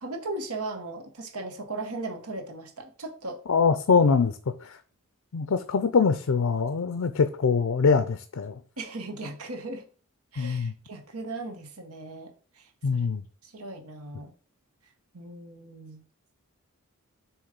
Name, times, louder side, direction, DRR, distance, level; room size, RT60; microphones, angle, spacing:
voice 1, 0.0-3.4 8.8-9.9 10.3-12.3 12.6-12.7 12.9-13.1 13.4-14.3 15.1-16.0, right 2 dB, 90° right, 1.3 m, -37 dB
voice 2, 3.5-4.8 5.3-8.6 10.4-10.7 12.8-13.2, left 5 dB, 70° left, 0.5 m, -23 dB
7.1 x 3.1 x 5.1 m
head